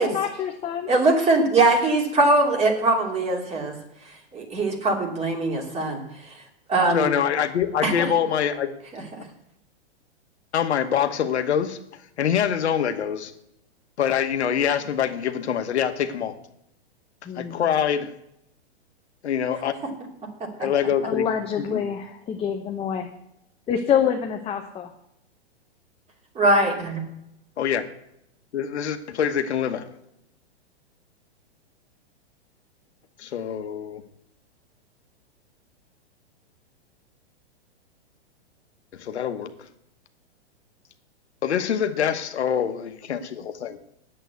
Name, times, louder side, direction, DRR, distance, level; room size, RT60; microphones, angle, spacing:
voice 1, 0.0-0.9 17.3-17.7 21.0-23.1 23.7-24.9, left 8 dB, 15° left, 3 dB, 0.8 m, -26 dB
voice 2, 0.9-3.8 4.3-6.0 6.7-7.1 7.8-8.1 8.9-9.0 26.3-27.0, right 2 dB, 20° right, 1 dB, 2.8 m, -21 dB
voice 3, 6.9-8.8 10.5-11.8 12.2-13.3 14.0-16.3 17.4-18.1 19.2-19.7 20.6-21.2 21.7-21.9 27.6-27.8 28.5-29.8 33.2-34.0 39.0-39.7 41.4-43.8, left 8 dB, 75° left, 8 dB, 1.2 m, -25 dB
9.0 x 7.7 x 8.1 m, 0.80 s
hypercardioid pair, 125°, 33 cm